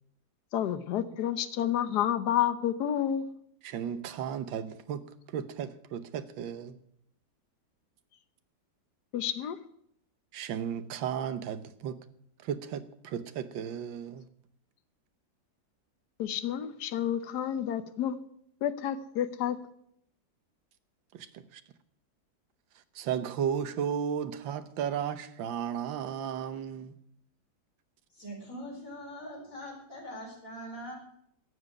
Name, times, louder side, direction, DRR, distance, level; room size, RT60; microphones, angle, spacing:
voice 1, 0.5-3.2 9.1-9.6 16.2-18.1 18.6-19.6, left 10 dB, 65° left, 1.4 m, -30 dB
voice 2, 3.6-6.8 10.3-12.0 12.4-14.3 21.1-21.6 23.0-27.0, right 8 dB, 80° right, 1.6 m, -34 dB
voice 3, 28.1-30.9, equal, 45° left, 5.0 m, -42 dB
12.5 x 7.6 x 9.3 m
omnidirectional pair, 2.1 m